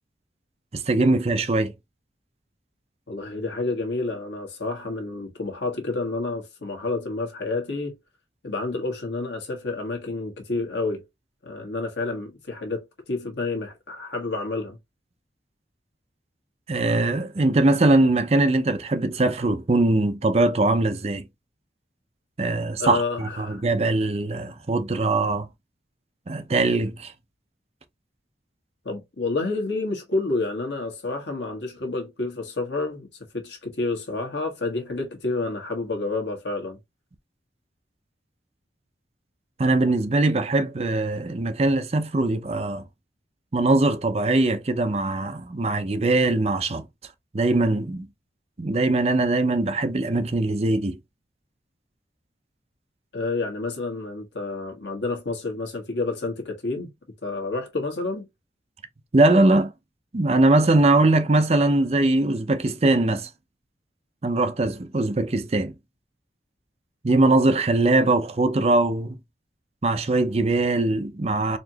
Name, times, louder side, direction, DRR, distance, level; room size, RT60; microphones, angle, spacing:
voice 1, 0.7-1.7 16.7-21.2 22.4-25.5 26.3-27.1 39.6-42.8 43.5-46.9 47.3-48.1 48.6-51.0 59.1-59.7 60.1-63.3 64.2-65.7 67.0-69.2 69.8-71.6, right 2 dB, 35° right, 0.5 m, -21 dB
voice 2, 3.1-7.9 8.4-11.0 11.4-14.8 22.8-23.6 28.8-33.1 33.3-36.8 53.1-56.9 57.2-58.3, left 3 dB, 80° left, 1.4 m, -29 dB
4.2 x 2.9 x 2.8 m
head